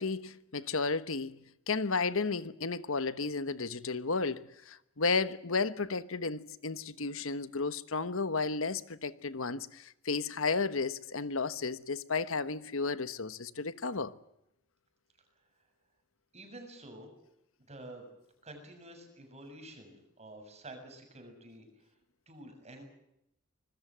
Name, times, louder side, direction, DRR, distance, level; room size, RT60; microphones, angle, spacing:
voice 1, 0.0-14.1, left 4 dB, 65° left, 1.3 m, -33 dB
voice 2, 16.3-17.1 17.7-18.1 18.4-21.7 22.3-22.9, right 1 dB, 30° right, 7.0 m, -49 dB
26.0 x 21.0 x 7.5 m
head